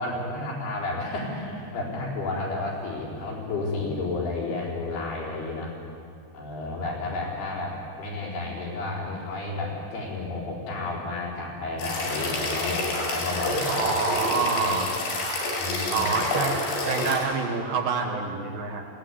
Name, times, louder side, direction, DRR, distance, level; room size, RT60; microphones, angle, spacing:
voice 1, 0.0-5.8 6.3-12.8 13.1-14.8 15.6-16.1, left 2 dB, 65° left, -4 dB, 6.3 m, -32 dB
sound 1, 11.8-17.2, left 2 dB, 85° left, 7.6 m, -28 dB
voice 2, 13.7-14.9 15.9-16.6 16.8-18.9, right 5 dB, 65° right, 2 dB, 2.8 m, -27 dB
20.5 x 17.0 x 9.6 m, 2.4 s
omnidirectional pair, 5.1 m